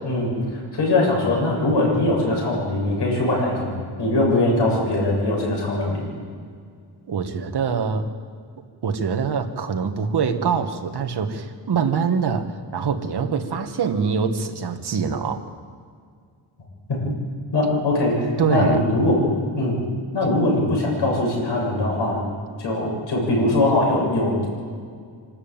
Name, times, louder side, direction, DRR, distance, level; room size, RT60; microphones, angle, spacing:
voice 1, 0.0-6.0 17.0-17.1 17.5-19.2 19.6-19.8 20.1-22.2 22.6-24.5, left 2 dB, 60° left, -2 dB, 7.7 m, -21 dB
voice 2, 7.1-8.1 8.8-15.4 18.4-18.8, right 6 dB, 55° right, 6 dB, 1.8 m, -24 dB
25.5 x 13.0 x 9.1 m, 2.1 s
wide cardioid pair, 155°, 46 cm